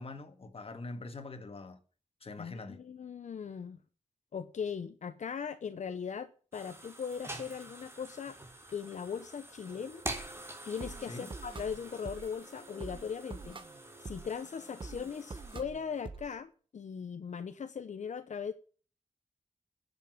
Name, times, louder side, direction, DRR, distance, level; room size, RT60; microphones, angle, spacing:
voice 1, 0.0-1.8 2.2-2.8 11.0-11.3, left 3 dB, 50° left, 1.8 m, -44 dB
voice 2, 2.4-3.8 4.3-8.4 8.7-10.0 10.7-13.6 14.0-18.5, left 6 dB, 80° left, 0.8 m, -39 dB
sound 1, 6.5-15.6, right 1 dB, 20° right, 3.1 m, -47 dB
sound 2, 9.6-16.3, right 3 dB, 45° right, 1.2 m, -47 dB
10.5 x 7.4 x 9.5 m
wide cardioid pair, 120°, 12 cm